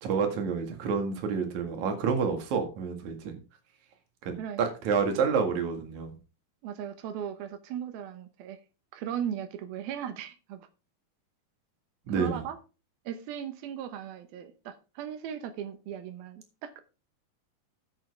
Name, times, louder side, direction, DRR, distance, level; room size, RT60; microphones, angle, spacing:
voice 1, 0.0-3.4 4.2-6.2 12.1-12.4, right 5 dB, 60° right, 5 dB, 3.1 m, -29 dB
voice 2, 6.6-8.6 8.9-10.7 12.1-12.6 13.1-16.8, right 9 dB, 90° right, 9 dB, 3.0 m, -37 dB
10.5 x 8.8 x 3.4 m, 0.32 s
omnidirectional pair, 4.2 m